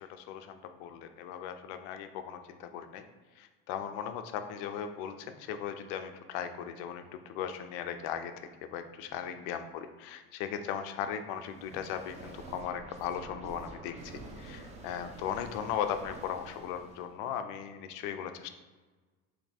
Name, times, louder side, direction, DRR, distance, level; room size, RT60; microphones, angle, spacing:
voice 1, 0.0-3.1 3.4-18.5, left 8 dB, 80° left, 8 dB, 0.5 m, -38 dB
sound 1, 11.4-17.1, right 2 dB, 25° right, 0.5 m, -48 dB
3.4 x 2.7 x 4.0 m, 1.3 s
cardioid pair, 145°, 30 cm